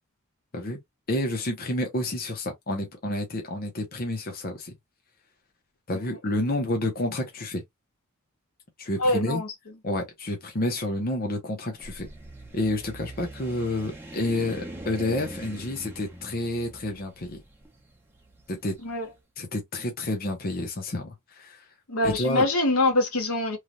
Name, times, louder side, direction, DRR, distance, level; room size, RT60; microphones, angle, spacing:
voice 1, 1.1-4.7 5.9-7.6 8.8-9.4 9.8-12.1 12.5-17.4 18.5-18.8 19.4-21.7 22.0-22.5, left 1 dB, 45° left, 0.8 m, -29 dB
voice 2, 9.0-9.5 18.8-19.1 21.9-23.6, left 2 dB, 80° left, 1.1 m, -24 dB
sound 1, 11.7-18.9, right 1 dB, 10° right, 0.8 m, -42 dB
3.2 x 2.3 x 2.5 m
head